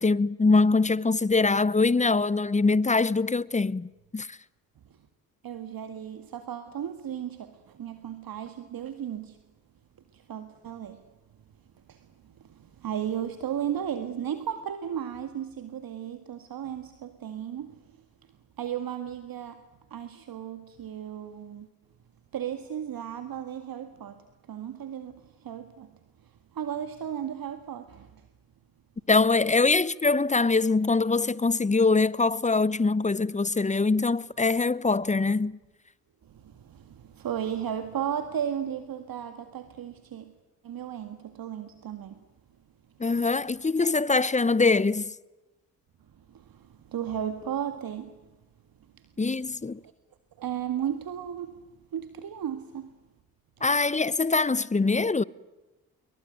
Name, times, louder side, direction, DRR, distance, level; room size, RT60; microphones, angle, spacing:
voice 1, 0.0-4.4 29.1-35.6 43.0-45.1 49.2-49.8 53.6-55.2, left 3 dB, 15° left, 0.9 m, -23 dB
voice 2, 5.4-9.4 10.1-11.0 11.9-18.0 18.6-19.6 19.9-21.7 22.3-25.9 26.2-28.3 36.2-40.3 40.6-42.2 46.1-48.2 48.9-49.1 49.8-49.9 50.4-51.6 51.9-53.0 53.6-53.7, right 9 dB, 55° right, 1.9 m, -35 dB
27.5 x 22.5 x 9.3 m
hypercardioid pair, 45°, 43 cm